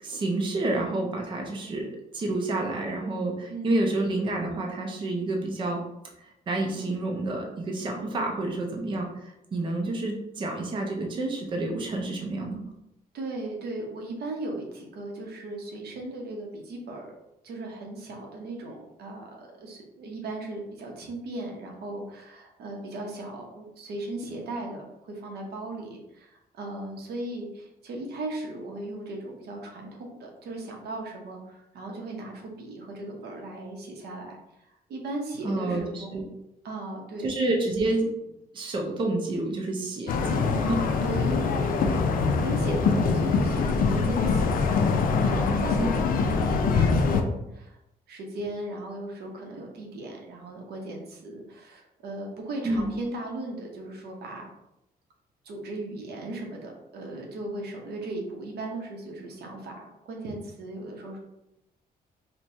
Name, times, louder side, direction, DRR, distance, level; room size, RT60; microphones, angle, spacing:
voice 1, 0.0-5.8 6.5-12.6 35.4-36.2 37.2-38.1 38.5-40.9 45.8-46.0 52.6-52.9, right 2 dB, 30° right, 1 dB, 0.5 m, -29 dB
voice 2, 3.5-3.9 13.1-17.1 17.4-36.2 36.6-37.3 41.0-44.7 45.2-47.8 48.1-54.5 55.4-61.2, right 2 dB, 90° right, 0 dB, 0.8 m, -37 dB
sound 1, 40.1-47.2, left 4 dB, 60° left, 0.4 m, -24 dB
4.4 x 2.2 x 2.7 m, 0.86 s
cardioid pair, 160°, 16 cm